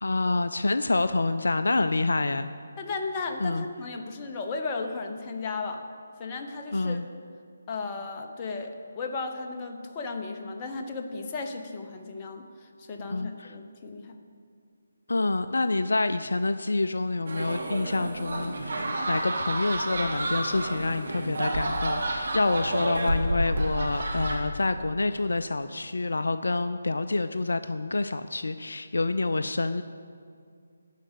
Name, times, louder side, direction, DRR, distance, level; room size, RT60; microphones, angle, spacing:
voice 1, 0.0-2.5 3.4-3.6 6.7-7.1 13.1-13.5 15.1-29.8, left 2 dB, 70° left, 11 dB, 0.4 m, -27 dB
voice 2, 2.8-5.8 6.2-7.0 7.7-14.2, left 3 dB, 25° left, 3 dB, 0.9 m, -35 dB
sound 1, 17.3-24.4, right 1 dB, 55° right, 1.8 m, -30 dB
11.5 x 5.0 x 8.2 m, 2.3 s
figure-of-eight pair, 150°, 0 cm